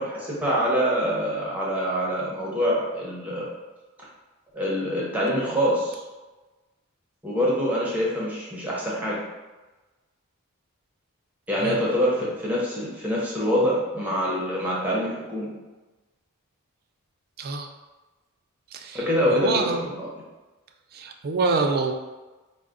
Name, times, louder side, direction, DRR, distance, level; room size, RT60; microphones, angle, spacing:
voice 1, 0.0-3.5 4.5-6.0 7.2-9.2 11.5-15.5 18.9-20.1, equal, 5° right, -6 dB, 0.7 m, -25 dB
voice 2, 17.4-17.7 18.7-19.0 19.3-19.8 20.9-21.9, right 4 dB, 45° right, 4 dB, 0.4 m, -26 dB
4.5 x 2.0 x 3.7 m, 1.2 s
head